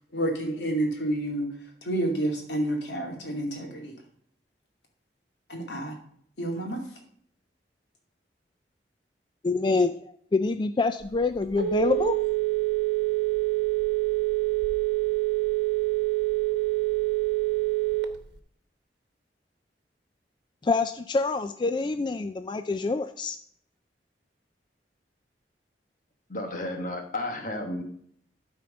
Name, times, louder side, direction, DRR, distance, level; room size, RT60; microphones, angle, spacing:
voice 1, 0.1-1.5 1.8-3.9 5.5-6.0 6.4-6.8, right 1 dB, 85° left, 1 dB, 2.4 m, -29 dB
voice 2, 9.4-12.2 20.6-23.4, left 3 dB, 25° left, 9 dB, 0.3 m, -26 dB
Telephone, 11.0-18.4, right 20 dB, 90° right, 1.0 m, -26 dB
voice 3, 26.3-27.8, left 1 dB, 50° left, 3 dB, 1.4 m, -32 dB
12.0 x 4.4 x 5.2 m, 0.64 s
head